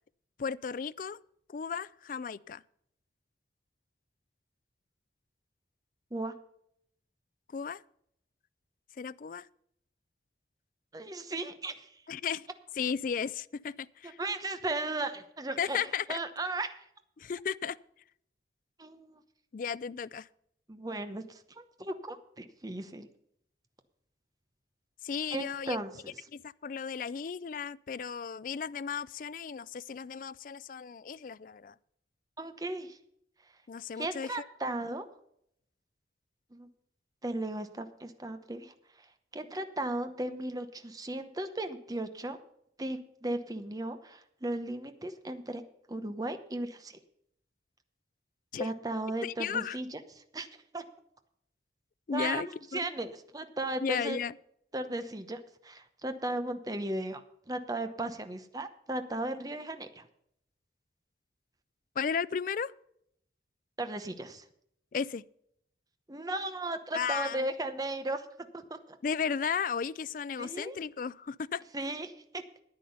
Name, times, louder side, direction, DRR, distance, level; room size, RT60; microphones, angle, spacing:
voice 1, 0.4-1.2 1.5-2.6 7.5-7.8 9.0-9.5 12.1-12.5 12.8-14.2 15.6-16.2 17.2-17.8 19.5-20.3 25.0-25.8 26.3-31.7 33.7-34.3 48.5-48.7 49.2-49.8 52.1-52.8 53.8-54.3 62.0-62.7 64.9-65.2 66.9-67.5 69.0-71.6, left 6 dB, 50° left, 0.4 m, -34 dB
voice 2, 10.9-12.0 14.2-15.8 16.1-16.7 18.8-19.2 20.7-23.1 25.3-25.9 32.4-33.0 34.0-35.0 36.5-36.7 37.2-39.1 39.3-42.4 42.8-45.6 45.9-47.0 48.6-50.5 50.7-50.8 52.1-54.2 54.7-57.2 57.5-60.0 63.8-64.4 66.1-68.2 68.5-69.0 70.4-70.8 71.7-72.4, right 2 dB, 20° right, 0.8 m, -36 dB
10.5 x 10.0 x 5.5 m
head